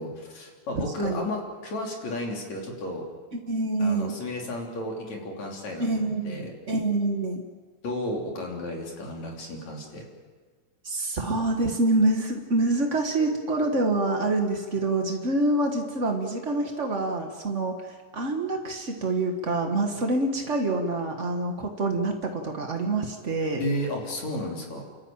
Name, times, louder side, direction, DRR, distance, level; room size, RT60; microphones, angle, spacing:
voice 1, 0.0-3.0 3.8-6.5 7.8-10.0 23.6-24.8, left 1 dB, 50° left, 0 dB, 4.5 m, -33 dB
voice 2, 0.7-1.2 3.3-4.1 5.8-7.4 10.8-23.6, right 2 dB, 70° right, 3 dB, 0.6 m, -26 dB
30.0 x 13.5 x 9.0 m, 1.5 s
omnidirectional pair, 4.1 m